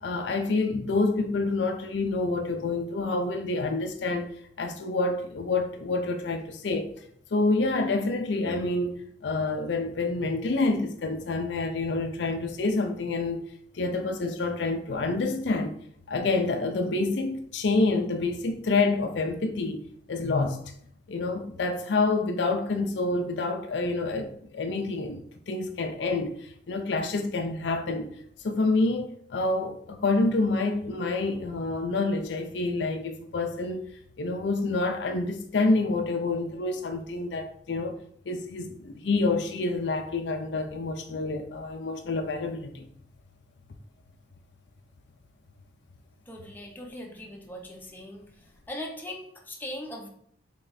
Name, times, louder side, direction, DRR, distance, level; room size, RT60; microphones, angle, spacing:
voice 1, 0.0-4.3 4.6-6.9 7.3-8.9 9.2-13.4 13.7-15.7 16.1-20.6 21.1-28.1 28.4-33.9 34.2-38.0 38.3-42.9, left 3 dB, 70° left, 0.5 m, -27 dB
voice 2, 46.3-48.3 48.7-50.1, left 1 dB, 10° left, 0.7 m, -39 dB
3.5 x 3.3 x 3.9 m
head